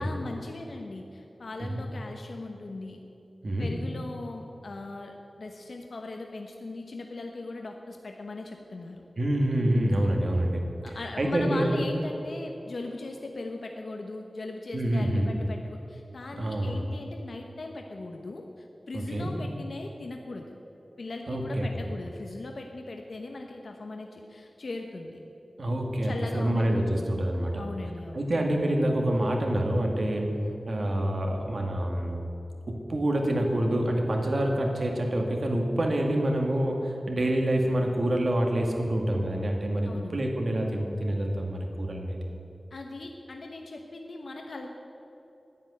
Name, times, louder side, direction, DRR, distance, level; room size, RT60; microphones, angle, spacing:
voice 1, 0.0-3.0 3.6-9.0 10.8-20.5 21.0-25.2 26.0-26.7 26.9-27.3 27.6-28.3 39.8-40.2 42.7-44.7, left 2 dB, 70° left, 3 dB, 1.0 m, -39 dB
voice 2, 9.2-11.7 14.7-15.3 16.4-16.8 18.9-19.3 21.3-21.7 25.6-27.6 28.1-30.4 30.7-32.2 32.7-42.2, right 1 dB, 60° right, 1 dB, 2.0 m, -27 dB
10.5 x 8.9 x 9.6 m, 2.8 s
wide cardioid pair, 80°, 0 cm